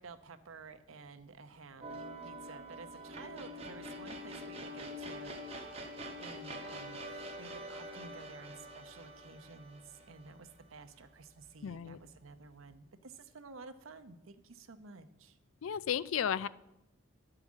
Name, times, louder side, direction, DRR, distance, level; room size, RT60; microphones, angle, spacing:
voice 1, 0.0-5.7 6.2-15.4, right 4 dB, 85° right, 9 dB, 0.8 m, -52 dB
sound 1, 1.8-11.0, equal, 30° right, 1.2 m, -45 dB
voice 2, 11.6-12.0 15.6-16.5, left 8 dB, 85° left, 17 dB, 0.4 m, -33 dB
11.5 x 4.9 x 7.3 m, 0.90 s
head